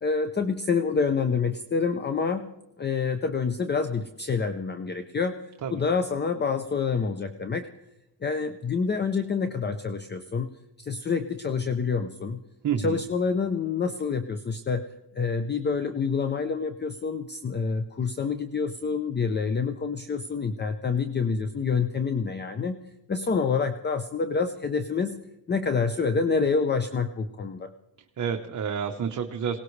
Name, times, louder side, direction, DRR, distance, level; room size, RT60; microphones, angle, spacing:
voice 1, 0.0-2.5 2.8-5.4 5.7-7.7 8.2-10.5 10.8-12.4 12.8-14.9 15.2-22.8 23.1-25.2 25.5-27.7, left 5 dB, 25° left, 10 dB, 0.6 m, -27 dB
voice 2, 12.6-13.0 28.2-29.6, right 7 dB, 45° right, 3 dB, 1.0 m, -29 dB
21.5 x 18.0 x 3.3 m, 0.94 s
cardioid pair, 130°, 41 cm